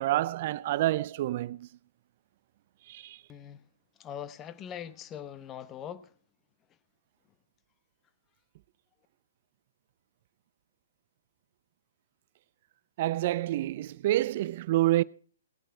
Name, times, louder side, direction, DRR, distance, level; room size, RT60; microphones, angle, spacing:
voice 1, 0.0-1.7 2.9-3.2 13.0-15.0, right 15 dB, 45° right, 0.6 m, -28 dB
voice 2, 3.3-3.6 4.0-6.1, left 9 dB, 20° left, 1.0 m, -41 dB
19.0 x 8.8 x 4.6 m
hypercardioid pair, 135°, 0 cm